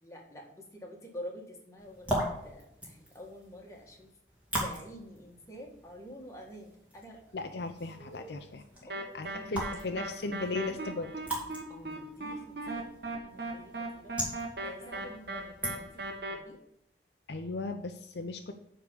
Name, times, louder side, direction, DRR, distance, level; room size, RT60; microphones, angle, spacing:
voice 1, 0.0-4.1 4.6-7.4 8.0-8.4 8.9-11.0 11.7-14.1 14.6-16.6, equal, 15° left, -1 dB, 1.7 m, -48 dB
sound 1, 1.8-16.2, right 1 dB, 10° right, 2.4 m, -40 dB
voice 2, 7.3-8.6 9.1-11.1 17.3-18.5, left 3 dB, 65° left, 6 dB, 0.6 m, -36 dB
sound 2, 8.9-16.3, right 2 dB, 60° right, 1.5 m, -38 dB
9.4 x 3.8 x 6.9 m, 0.77 s
head